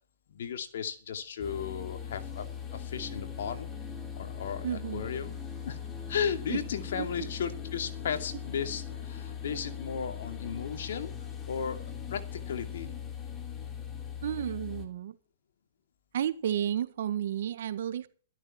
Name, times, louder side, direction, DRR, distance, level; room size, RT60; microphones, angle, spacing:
voice 1, 0.3-2.5 2.7-3.7 4.1-5.3 5.6-5.8 6.1-11.1 11.5-11.8 12.1-12.9, left 7 dB, 65° left, 6 dB, 2.7 m, -35 dB
sound 1, 1.4-14.9, left 8 dB, 15° left, 2.8 m, -40 dB
voice 2, 4.6-5.0 6.5-6.6 7.0-7.3 14.2-15.2 16.1-18.1, right 10 dB, 65° right, 13 dB, 1.5 m, -32 dB
13.5 x 12.5 x 4.4 m, 0.41 s
hypercardioid pair, 145°, 0 cm